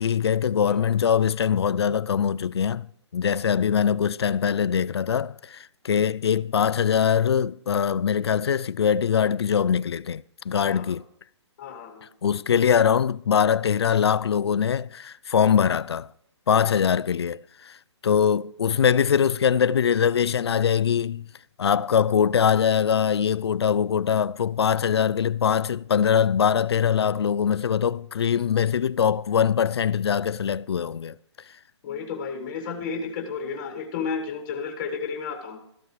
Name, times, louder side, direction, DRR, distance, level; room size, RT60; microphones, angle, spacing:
voice 1, 0.0-2.8 3.1-11.0 12.2-16.1 16.5-17.8 18.0-21.3 21.6-31.1, left 8 dB, 60° left, 0.4 m, -22 dB
voice 2, 11.6-12.1 31.8-35.6, left 5 dB, 15° left, 1.6 m, -32 dB
14.0 x 12.5 x 3.2 m
hypercardioid pair, 175°, 15 cm